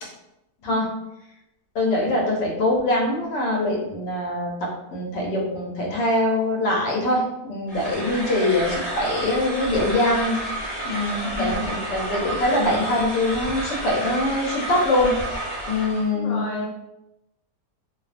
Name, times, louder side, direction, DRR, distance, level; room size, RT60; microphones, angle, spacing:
voice 1, 1.7-10.4 10.8-15.1 15.7-16.4, left 1 dB, 85° left, -2 dB, 1.3 m, -23 dB
sound 1, 7.7-16.1, right 1 dB, 35° left, 0.6 m, -30 dB
voice 2, 16.1-16.7, left 3 dB, 55° left, -3 dB, 1.0 m, -31 dB
3.0 x 2.0 x 2.4 m, 0.88 s
omnidirectional pair, 1.8 m